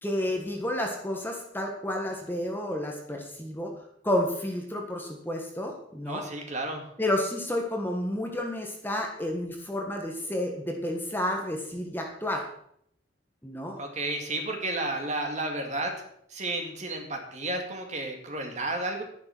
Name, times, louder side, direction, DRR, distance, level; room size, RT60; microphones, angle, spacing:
voice 1, 0.0-3.7 4.0-6.2 7.0-12.5 13.4-13.8, left 1 dB, 10° left, 2 dB, 1.5 m, -31 dB
voice 2, 6.1-6.8 13.8-16.0 16.3-19.0, right 2 dB, 40° right, 3 dB, 2.3 m, -32 dB
11.0 x 10.5 x 6.1 m, 0.69 s
head